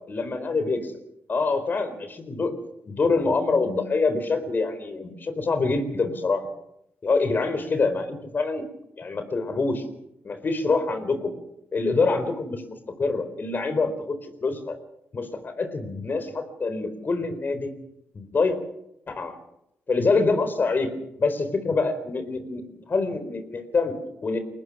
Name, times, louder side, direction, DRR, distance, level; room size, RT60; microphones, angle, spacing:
voice 1, 0.1-0.9 1.3-2.5 2.9-6.5 7.0-8.7 9.0-9.8 10.2-11.3 11.7-12.6 13.0-14.8 15.1-17.7 18.1-18.6 19.1-19.4 19.9-20.9 21.2-22.6 22.9-24.0 24.2-24.4, left 3 dB, 45° left, 9 dB, 4.1 m, -25 dB
23.0 x 19.0 x 6.3 m, 0.81 s
cardioid pair, 75°, 5 cm